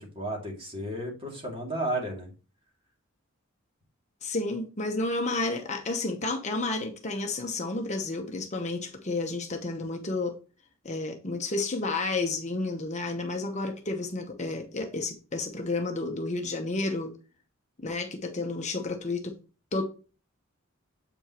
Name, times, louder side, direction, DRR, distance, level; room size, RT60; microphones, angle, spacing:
voice 1, 0.0-2.3, right 1 dB, 25° right, 2.5 m, -33 dB
voice 2, 4.2-10.4 10.8-17.1 17.8-19.3 19.7-19.8, left 2 dB, 35° left, 0.9 m, -31 dB
7.8 x 5.3 x 3.0 m
head